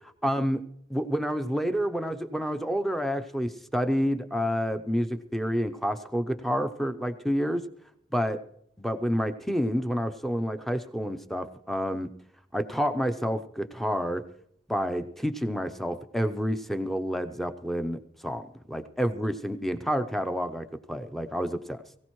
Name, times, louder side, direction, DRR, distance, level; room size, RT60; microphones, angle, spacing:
voice 1, 0.2-0.6 0.9-7.6 8.1-8.4 8.8-12.1 12.5-14.2 14.7-21.8, equal, ahead, 9 dB, 0.6 m, -29 dB
22.5 x 15.5 x 3.1 m, 0.73 s
head